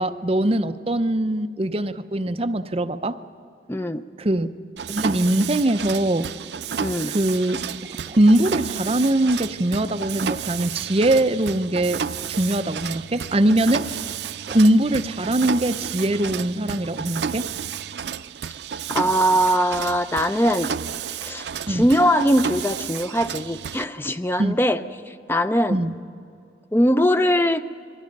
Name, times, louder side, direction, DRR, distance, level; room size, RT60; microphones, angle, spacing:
voice 1, 0.0-3.2 4.2-4.6 4.9-6.3 7.1-7.7 8.1-12.0 12.4-13.9 14.5-17.5 21.7-21.9 24.4-24.6 25.7-25.9, right 1 dB, 35° right, 9 dB, 0.6 m, -21 dB
voice 2, 3.7-4.0 6.8-7.1 18.9-20.7 21.2-25.8 26.7-27.6, equal, 15° left, 11 dB, 0.6 m, -21 dB
Mechanisms, 4.8-23.8, right 7 dB, 75° right, 0.5 m, -31 dB
28.0 x 21.5 x 5.3 m, 2.5 s
head